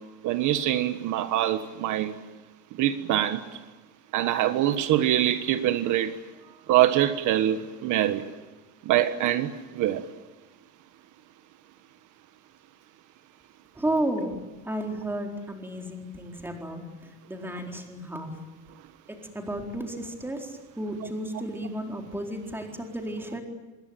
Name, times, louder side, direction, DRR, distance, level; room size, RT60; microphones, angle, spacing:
voice 1, 0.2-2.1 2.8-3.4 4.1-6.2 6.7-8.2 8.9-10.0, right 12 dB, 65° right, 1.5 m, -24 dB
voice 2, 13.7-14.4 14.6-18.3 19.1-23.4, right 1 dB, 5° right, 4.2 m, -33 dB
26.5 x 22.0 x 9.1 m
cardioid pair, 160°, 32 cm